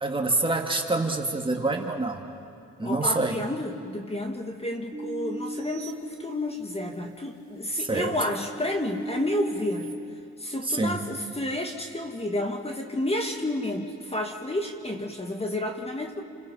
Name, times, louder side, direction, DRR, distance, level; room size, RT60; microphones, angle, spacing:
voice 1, 0.0-2.2 2.8-3.4 7.9-8.1 10.7-11.1, right 2 dB, 15° right, 2 dB, 2.4 m, -26 dB
voice 2, 2.8-10.0 10.4-16.2, left 1 dB, 20° left, 3 dB, 2.0 m, -31 dB
sound 1, 4.9-6.9 7.4-9.9, equal, 35° right, 3.8 m, -38 dB
29.0 x 25.5 x 5.8 m, 2.5 s
cardioid pair, 90°, 30 cm